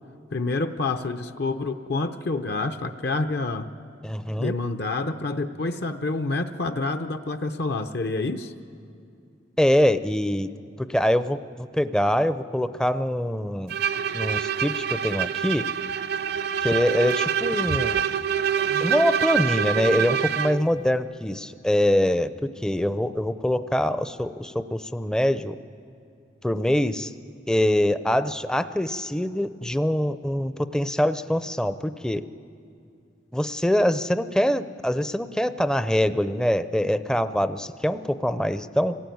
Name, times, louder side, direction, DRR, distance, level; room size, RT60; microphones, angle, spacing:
voice 1, 0.3-3.7 4.4-8.5, left 3 dB, 60° left, 8 dB, 0.7 m, -28 dB
voice 2, 4.0-4.5 9.6-10.5 10.8-13.8 14.1-15.7 16.6-18.0 18.8-25.6 26.4-27.1 27.5-32.2 33.3-39.0, equal, 5° left, 12 dB, 0.5 m, -24 dB
Bowed string instrument, 13.7-20.6, right 8 dB, 60° right, 0.6 m, -26 dB
25.5 x 17.5 x 9.3 m, 2.5 s
head